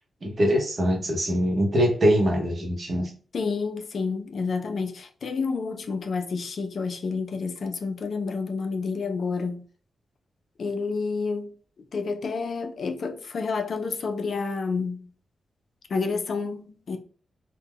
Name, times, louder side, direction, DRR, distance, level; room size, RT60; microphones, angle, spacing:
voice 1, 0.2-3.1, equal, 40° right, 0.7 m, -23 dB
voice 2, 3.3-9.6 10.6-11.5 11.9-15.1 15.9-17.0, left 4 dB, 55° left, 0.3 m, -29 dB
3.4 x 2.1 x 2.2 m
wide cardioid pair, 150°, 0 cm